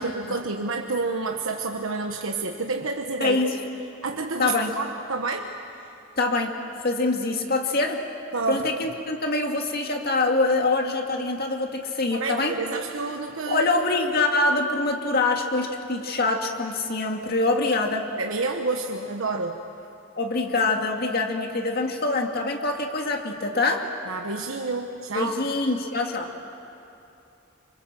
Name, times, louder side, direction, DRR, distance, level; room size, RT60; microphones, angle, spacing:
voice 1, 0.0-3.4 4.0-5.5 8.3-8.9 12.1-13.7 18.2-19.6 24.1-25.5, right 3 dB, 85° right, 3 dB, 1.2 m, -29 dB
voice 2, 3.2-3.6 4.4-4.7 6.2-6.6 6.8-8.0 8.5-12.6 13.5-18.1 20.2-23.9 25.1-26.3, left 3 dB, 50° left, 3 dB, 2.2 m, -24 dB
27.5 x 25.0 x 7.6 m, 2.8 s
head